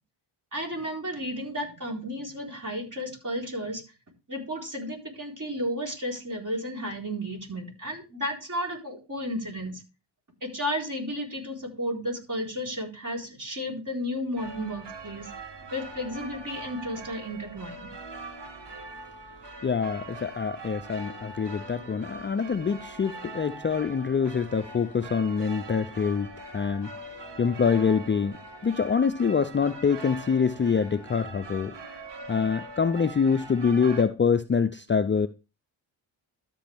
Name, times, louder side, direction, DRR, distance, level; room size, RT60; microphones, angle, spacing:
voice 1, 0.5-3.8 4.3-9.8 10.4-15.3 15.7-17.9, equal, 40° right, 4.2 m, -33 dB
sound 1, 14.4-34.0, right 2 dB, 55° right, 1.9 m, -42 dB
voice 2, 19.6-28.4 28.6-31.8 32.3-35.3, left 6 dB, 25° left, 0.5 m, -25 dB
13.0 x 5.4 x 3.5 m
cardioid pair, 55°, 49 cm